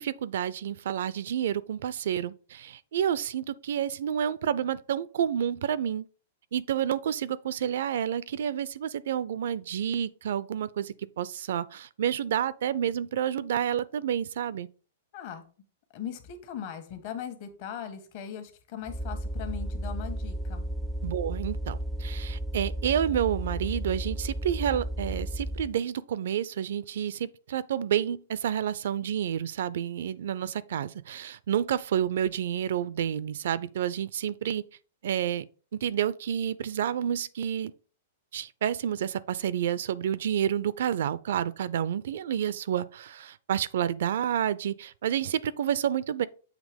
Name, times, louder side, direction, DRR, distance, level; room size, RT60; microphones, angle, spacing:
voice 1, 0.0-6.1 6.5-14.7 21.0-34.6 35.0-35.5 35.7-37.7 38.3-46.3, right 9 dB, 70° right, 0.4 m, -29 dB
voice 2, 15.1-15.4 15.9-20.7, left 8 dB, 50° left, 1.3 m, -39 dB
sound 1, 18.9-25.8, right 1 dB, ahead, 0.4 m, -33 dB
7.4 x 3.0 x 5.1 m
hypercardioid pair, 135°, 0 cm